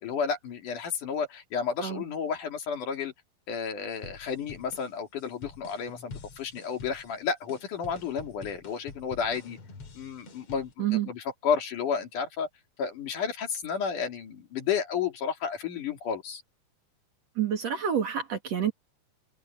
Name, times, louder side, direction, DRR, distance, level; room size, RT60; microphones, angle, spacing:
voice 1, 0.0-3.1 3.5-9.6 10.0-10.7 11.1-12.5 12.8-16.4, left 6 dB, 60° left, 3.9 m, -31 dB
sound 1, 3.9-10.7, left 4 dB, 45° left, 3.2 m, -47 dB
voice 2, 10.8-11.1 17.4-18.7, right 9 dB, 50° right, 2.7 m, -28 dB
omnidirectional pair, 4.2 m